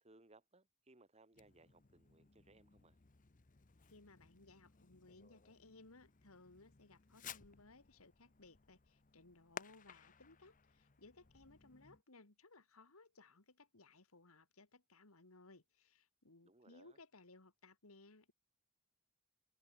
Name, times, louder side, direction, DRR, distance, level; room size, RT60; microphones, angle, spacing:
voice 1, 0.0-3.0 16.4-17.0, right 2 dB, 30° right, 1.7 m, -66 dB
Fireworks, 1.3-12.0, left 7 dB, 35° left, 0.9 m, -58 dB
voice 2, 3.9-18.3, left 3 dB, 75° left, 2.3 m, -63 dB
head